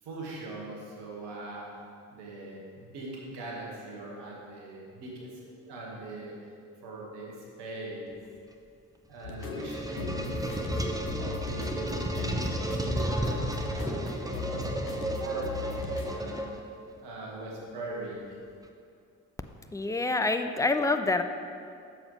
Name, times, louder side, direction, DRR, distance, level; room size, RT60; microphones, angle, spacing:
voice 1, 0.0-1.7 2.1-6.3 6.8-8.2 9.1-10.8 11.2-16.5 17.0-18.3, right 2 dB, 65° right, -3 dB, 2.2 m, -41 dB
sound 1, 9.2-16.2, left 5 dB, 90° left, 0.7 m, -38 dB
sound 2, 9.2-16.9, right 1 dB, 10° right, 1.0 m, -33 dB
voice 2, 19.7-21.2, left 3 dB, 5° left, 7 dB, 0.5 m, -26 dB
13.0 x 7.1 x 3.4 m, 2.4 s
figure-of-eight pair, 45°, 44 cm